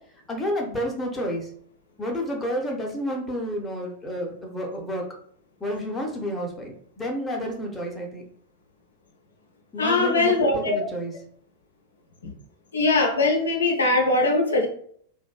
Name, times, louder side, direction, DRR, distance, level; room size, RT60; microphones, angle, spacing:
voice 1, 0.3-1.5 2.0-5.0 5.6-8.2 9.7-11.1, equal, 10° left, 0 dB, 0.6 m, -30 dB
voice 2, 9.8-10.7 12.2-12.3 12.7-14.7, left 2 dB, 70° left, 1 dB, 0.4 m, -21 dB
2.5 x 2.2 x 2.3 m, 0.62 s
figure-of-eight pair, 90°, 0 cm